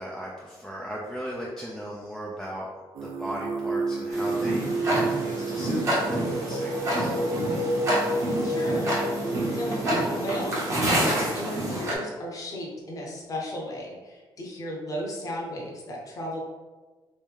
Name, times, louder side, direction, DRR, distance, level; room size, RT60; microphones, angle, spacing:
voice 1, 0.0-2.7 3.0-7.5, equal, 5° left, -4 dB, 0.4 m, -38 dB
Singing, 2.9-10.8, right 2 dB, 70° right, 0.4 m, -30 dB
Tick-tock, 4.1-11.9, right 1 dB, 35° right, 1.0 m, -28 dB
voice 2, 8.4-8.9 9.5-10.6 11.0-16.4, equal, 40° left, -3 dB, 0.8 m, -35 dB
3.0 x 2.6 x 3.4 m, 1.3 s
cardioid pair, 130°, 9 cm